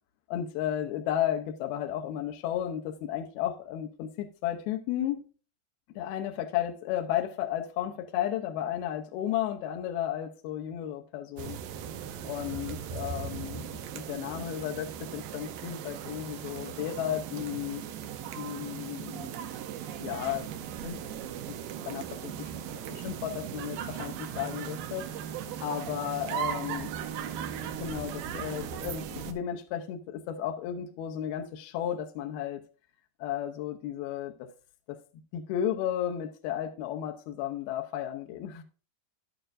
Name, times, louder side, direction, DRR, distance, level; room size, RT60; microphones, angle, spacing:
voice 1, 0.3-5.2 6.0-11.6 12.2-17.8 18.4-19.4 20.0-20.5 20.8-21.1 21.5-21.6 21.9-26.9 27.6-32.6 33.2-34.5 34.9-35.0 35.3-38.6, left 11 dB, 75° left, 2.3 m, -34 dB
sound 1, 11.4-29.3, right 9 dB, 85° right, 2.0 m, -38 dB
11.5 x 9.0 x 2.5 m
omnidirectional pair, 5.1 m